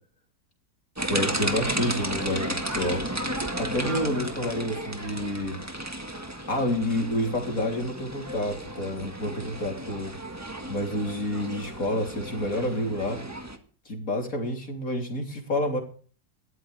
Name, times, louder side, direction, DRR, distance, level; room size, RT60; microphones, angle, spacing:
sound 1, 1.0-13.6, right 1 dB, 10° right, 1.5 m, -33 dB
voice 1, 1.1-3.1 3.6-5.6 6.5-10.2 10.7-13.2 13.9-15.8, left 1 dB, 50° left, 2 dB, 3.7 m, -29 dB
20.5 x 13.5 x 3.4 m, 0.41 s
omnidirectional pair, 1.9 m